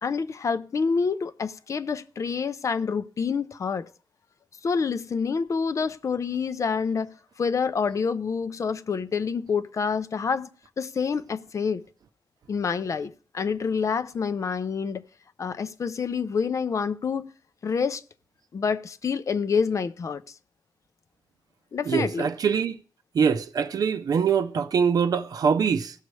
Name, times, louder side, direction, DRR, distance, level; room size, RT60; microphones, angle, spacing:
voice 1, 0.0-3.9 4.6-10.5 10.8-11.8 12.5-15.0 15.4-17.3 17.6-18.0 18.5-20.2 21.7-22.3, left 5 dB, 45° left, 0.5 m, -27 dB
voice 2, 21.9-22.8 23.1-25.9, right 6 dB, 60° right, 0.5 m, -23 dB
17.0 x 6.4 x 3.2 m
wide cardioid pair, 120°, 7 cm